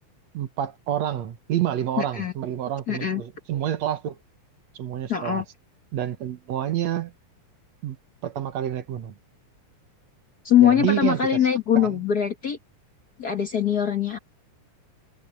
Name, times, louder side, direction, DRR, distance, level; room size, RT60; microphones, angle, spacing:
voice 1, 0.3-4.2 4.7-5.4 5.9-7.1 7.8-8.0 8.2-9.1 10.6-11.5 11.8-12.0, right 11 dB, 60° right, 2.3 m, -28 dB
voice 2, 2.0-2.3 2.9-3.2 5.1-5.4 10.4-12.6 13.2-14.2, left 9 dB, 50° left, 1.1 m, -22 dB
omnidirectional pair, 3.7 m